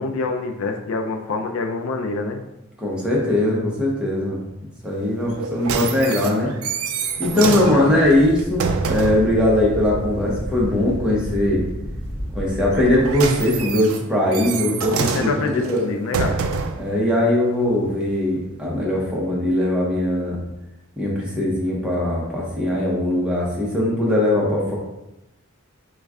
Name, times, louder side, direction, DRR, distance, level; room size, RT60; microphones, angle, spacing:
voice 1, 0.0-2.4 7.3-8.0 14.9-16.4, left 3 dB, 75° left, 5 dB, 0.4 m, -26 dB
voice 2, 2.8-4.4 4.8-6.5 7.2-11.6 12.3-15.8 16.8-20.4 21.0-24.8, left 1 dB, 5° right, -5 dB, 0.8 m, -20 dB
sound 1, 5.3-9.3 12.7-16.9 17.6-17.7, right 5 dB, 85° right, 0.4 m, -26 dB
Wind, 7.4-13.6, equal, 35° left, 0.8 m, -32 dB
3.1 x 2.3 x 3.5 m, 0.91 s
head